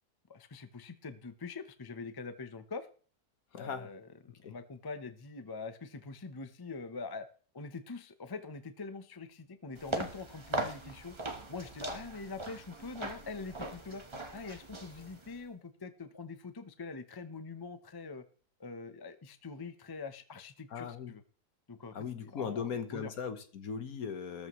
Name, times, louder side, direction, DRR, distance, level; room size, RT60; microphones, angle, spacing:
voice 1, 0.3-2.9 3.5-4.1 4.4-7.3 7.5-11.2 11.5-14.0 14.3-18.2 18.6-21.2 21.7-23.1, left 4 dB, 25° left, 10 dB, 0.6 m, -44 dB
voice 2, 3.5-3.9 4.4-4.5 20.7-21.1 21.9-24.5, left 6 dB, 65° left, 9 dB, 1.6 m, -38 dB
sound 1, 9.7-15.4, right 2 dB, 20° right, 1.0 m, -40 dB
14.5 x 13.5 x 3.1 m, 0.43 s
omnidirectional pair, 1.7 m